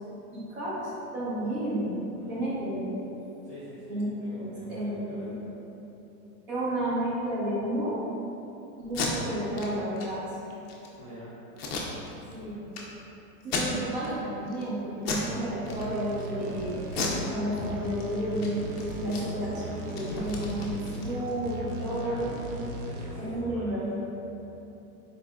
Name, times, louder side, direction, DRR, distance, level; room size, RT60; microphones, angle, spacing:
voice 1, 0.3-2.0 2.3-2.9 3.9-4.1 4.3-5.4 6.5-8.0 8.8-10.2 12.3-12.6 13.4-18.6 19.0-22.3 23.2-23.9, right 1 dB, 35° right, -8 dB, 0.8 m, -31 dB
voice 2, 3.4-5.5 11.0-11.3 18.9-19.2 21.9-22.3 22.8-24.1, left 1 dB, 5° right, -18 dB, 0.6 m, -46 dB
Packing tape duct tape, 8.8-9.1 9.5-9.7 10.0-10.1 10.5-10.9 11.6-12.3 12.7-12.8 13.4-14.1 14.5-14.7 15.0-15.3 15.6-16.3 16.9-18.0 18.3-18.5 18.8-21.4, left 4 dB, 45° left, 0.4 m, -34 dB
sound 1, 15.7-23.4, right 1 dB, 85° right, 0.7 m, -38 dB
4.1 x 3.1 x 2.4 m, 3.0 s
supercardioid pair, 170°, 45 cm